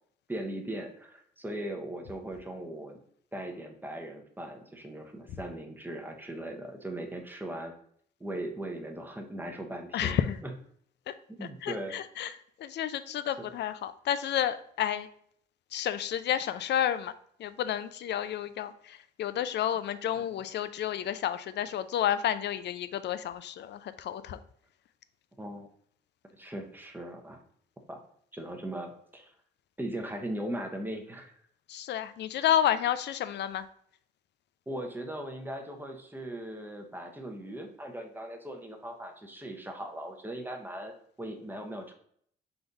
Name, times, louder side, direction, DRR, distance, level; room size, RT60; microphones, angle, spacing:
voice 1, 0.3-3.0 3.3-7.7 8.2-10.5 11.3-12.0 13.4-13.5 20.1-20.3 25.4-25.7 26.3-27.4 27.9-28.0 28.3-29.3 29.8-31.3 34.7-41.9, right 1 dB, 10° right, 3 dB, 0.8 m, -39 dB
voice 2, 9.9-10.4 11.1-11.2 11.6-12.3 12.6-15.1 15.7-17.1 17.4-24.4 31.7-33.7, left 10 dB, 60° left, 13 dB, 0.4 m, -30 dB
3.9 x 3.4 x 3.9 m, 0.63 s
cardioid pair, 90°, 20 cm